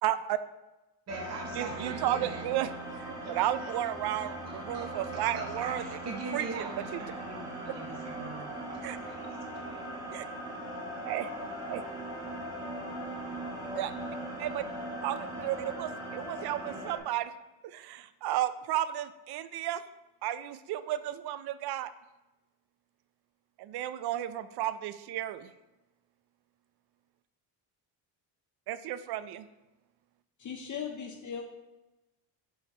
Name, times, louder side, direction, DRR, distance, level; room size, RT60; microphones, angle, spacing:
voice 1, 0.0-0.4 1.5-2.7 3.0-6.0 6.3-7.0 8.8-9.0 10.1-10.2 11.0-11.3 11.7-11.8 13.7-13.9 14.4-14.6 15.0-17.3 17.6-19.8 20.2-21.9 23.6-25.5 28.7-29.5, right 12 dB, 55° right, 13 dB, 0.5 m, -33 dB
sound 1, 1.1-17.0, right 1 dB, 10° right, 1.3 m, -39 dB
voice 2, 1.1-2.4 3.2-3.7 4.0-4.3 4.7-9.8, right 3 dB, 35° right, 1 dB, 0.8 m, -42 dB
voice 3, 30.4-31.4, left 7 dB, 40° left, 2 dB, 0.7 m, -38 dB
4.6 x 4.4 x 5.4 m, 1.0 s
cardioid pair, 110°, 47 cm